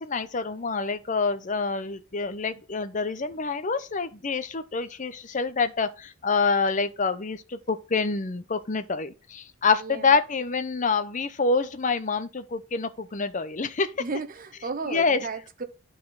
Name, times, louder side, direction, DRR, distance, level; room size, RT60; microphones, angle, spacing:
voice 1, 0.0-13.9 14.9-15.2, left 4 dB, 40° left, 0.7 m, -26 dB
voice 2, 9.7-10.2 14.0-15.6, right 4 dB, 45° right, 0.9 m, -34 dB
11.0 x 4.3 x 3.8 m
head